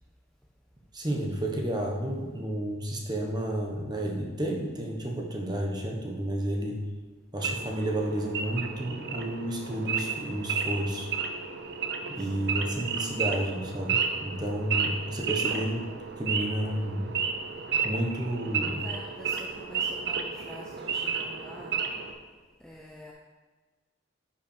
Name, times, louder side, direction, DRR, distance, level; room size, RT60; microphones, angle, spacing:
voice 1, 0.9-6.8 7.3-11.1 12.1-15.9 16.2-17.1 17.8-18.8, right 1 dB, 20° right, 0 dB, 1.1 m, -31 dB
Wild animals / Idling, 7.4-22.1, right 6 dB, 55° right, 0.7 m, -32 dB
voice 2, 12.2-12.6 18.5-21.8 22.6-23.1, equal, 5° left, -2 dB, 0.5 m, -46 dB
9.6 x 5.8 x 4.4 m, 1.4 s
head